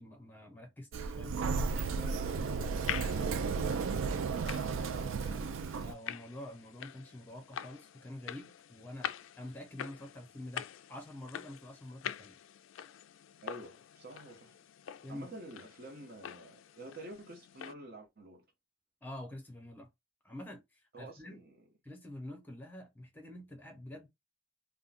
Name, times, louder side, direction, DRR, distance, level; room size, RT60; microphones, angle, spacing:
voice 1, 0.0-1.4 5.8-12.4 15.0-15.3 19.0-19.9 20.2-21.4 21.8-24.1, left 1 dB, 10° left, 0.9 m, -47 dB
Sliding door, 0.9-5.9, right 5 dB, 75° right, 0.3 m, -34 dB
voice 2, 1.7-5.2 13.4-14.6 15.1-18.5 20.9-21.6, right 2 dB, 50° right, 0.8 m, -49 dB
sound 1, 1.8-17.7, left 10 dB, 75° left, 0.3 m, -46 dB
3.6 x 2.2 x 2.5 m
head